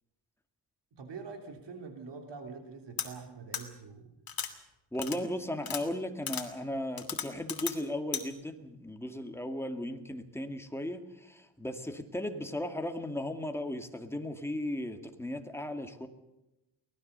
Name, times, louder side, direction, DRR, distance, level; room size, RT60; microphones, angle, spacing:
voice 1, 0.9-4.1, right 5 dB, 80° right, 4 dB, 3.4 m, -45 dB
sound 1, 3.0-3.1 3.5-3.6 4.3-4.5 5.0-5.2 5.6-5.8 6.3-6.4 7.0-7.7 8.1-8.2, left 7 dB, 55° left, 2.8 m, -35 dB
voice 2, 4.9-16.1, left 1 dB, 5° left, 5 dB, 2.2 m, -36 dB
24.0 x 18.5 x 6.8 m, 0.93 s
wide cardioid pair, 110°, 42 cm